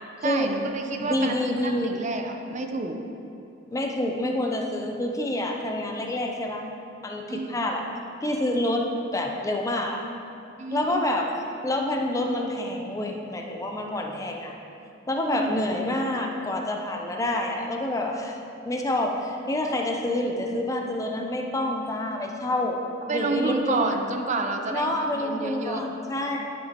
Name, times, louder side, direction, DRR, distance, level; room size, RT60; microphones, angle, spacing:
voice 1, 0.2-3.0 7.3-7.7 10.6-11.1 15.3-15.5 23.1-25.8, right 3 dB, 40° right, 4 dB, 0.5 m, -29 dB
voice 2, 1.0-2.0 3.7-6.7 7.0-7.8 8.2-10.0 10.7-11.3 11.6-14.5 15.1-18.4 18.6-22.8 23.1-24.0 24.7-26.4, left 1 dB, 15° left, 1 dB, 0.5 m, -27 dB
11.0 x 5.8 x 2.9 m, 2.7 s
head